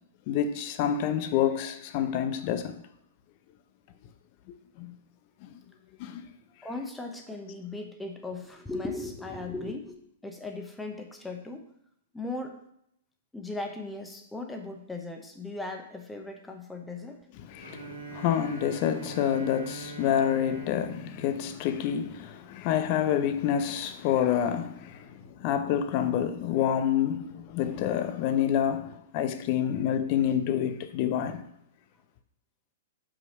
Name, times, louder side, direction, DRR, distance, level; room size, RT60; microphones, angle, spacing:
voice 1, 0.3-2.8 4.8-4.9 5.4-5.6 6.0-6.3 17.4-31.4, left 9 dB, 40° left, 0.7 m, -28 dB
voice 2, 6.6-11.7 12.1-12.6 13.3-17.2, left 2 dB, 5° left, 1.0 m, -37 dB
Bowed string instrument, 17.6-22.5, right 3 dB, 85° right, 2.0 m, -43 dB
5.8 x 4.7 x 5.4 m
figure-of-eight pair, 110°, 0 cm